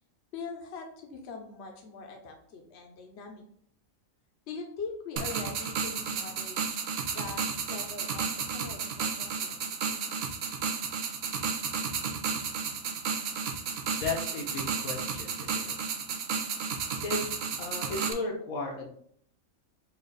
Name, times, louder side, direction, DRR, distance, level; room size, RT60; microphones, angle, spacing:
voice 1, 0.3-3.4 4.5-6.8 7.1-9.6 9.9-10.0, left 4 dB, 55° left, 2 dB, 1.0 m, -42 dB
sound 1, 5.2-18.1, right 6 dB, 60° right, 0.7 m, -33 dB
voice 2, 13.9-15.7 17.0-17.2 17.6-18.9, left 3 dB, 85° left, 0 dB, 1.3 m, -35 dB
4.2 x 2.5 x 4.0 m, 0.63 s
omnidirectional pair, 1.4 m